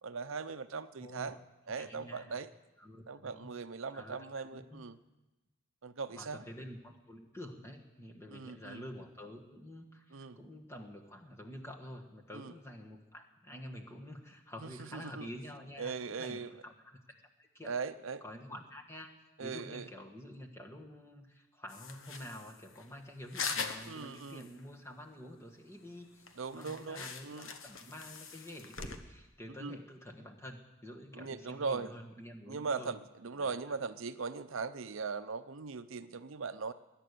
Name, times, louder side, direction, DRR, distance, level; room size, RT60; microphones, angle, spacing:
voice 1, 0.0-1.4 1.7-2.5 3.1-5.0 5.8-6.4 8.3-8.8 10.1-10.4 12.3-12.5 14.6-15.3 15.8-16.5 17.6-18.2 19.4-19.9 23.9-24.5 26.4-27.5 29.5-29.8 31.1-31.9 32.5-36.7, right 5 dB, 70° right, 12 dB, 0.7 m, -39 dB
voice 2, 1.7-2.4 2.8-3.5 3.9-4.2 4.5-4.8 6.1-17.7 18.2-19.1 19.4-33.0 33.4-33.6, left 1 dB, 15° left, 2 dB, 1.6 m, -48 dB
sound 1, 21.7-24.7 24.9-25.0 25.4-25.5 25.9-26.0 26.2-29.0, left 5 dB, 70° left, 1.2 m, -42 dB
21.5 x 9.7 x 6.7 m, 1.0 s
head